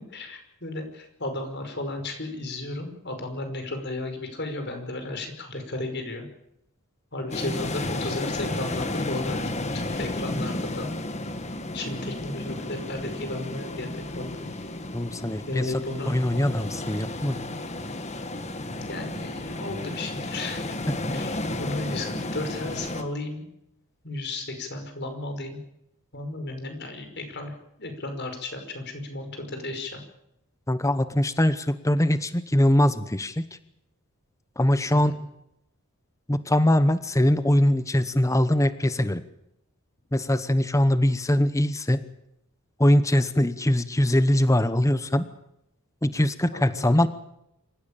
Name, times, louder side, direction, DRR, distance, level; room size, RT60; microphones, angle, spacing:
voice 1, 0.1-6.3 7.1-9.4 9.7-10.9 11.7-14.5 15.5-16.2 18.9-20.8 21.1-23.5 24.0-25.6 26.1-27.5 27.8-30.0 34.9-35.1 46.5-47.0, left 2 dB, 50° left, 6 dB, 5.4 m, -34 dB
sound 1, 7.3-23.0, left 1 dB, 30° left, 1.6 m, -32 dB
voice 2, 14.9-15.8 16.1-17.4 30.7-33.4 34.6-35.1 36.3-39.2 40.1-42.0 42.8-45.3 46.0-47.1, left 1 dB, 15° left, 13 dB, 0.9 m, -22 dB
26.0 x 15.5 x 8.9 m, 0.81 s
head